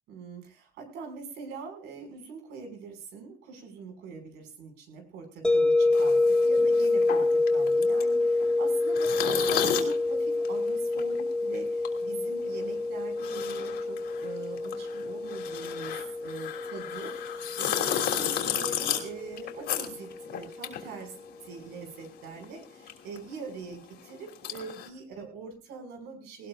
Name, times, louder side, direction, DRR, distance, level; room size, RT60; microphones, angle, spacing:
voice 1, 0.1-21.2 21.4-26.5, right 4 dB, 85° right, 5 dB, 5.9 m, -43 dB
sound 1, 5.4-20.4, left 2 dB, 5° left, 1.7 m, -27 dB
sound 2, 5.9-21.7 22.0-24.9, left 9 dB, 70° left, 3.2 m, -34 dB
19.5 x 19.0 x 2.5 m, 0.33 s
cardioid pair, 110°, 17 cm